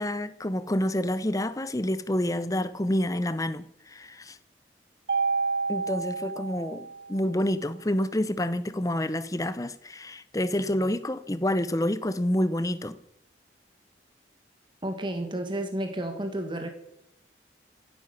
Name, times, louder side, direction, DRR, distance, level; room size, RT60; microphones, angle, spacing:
voice 1, 0.0-4.4 5.7-13.0, left 1 dB, 20° left, 0.7 m, -28 dB
Mallet percussion, 5.1-7.3, right 4 dB, 65° right, 1.2 m, -29 dB
voice 2, 14.8-16.7, right 1 dB, 25° right, 1.8 m, -31 dB
15.5 x 9.8 x 7.0 m
head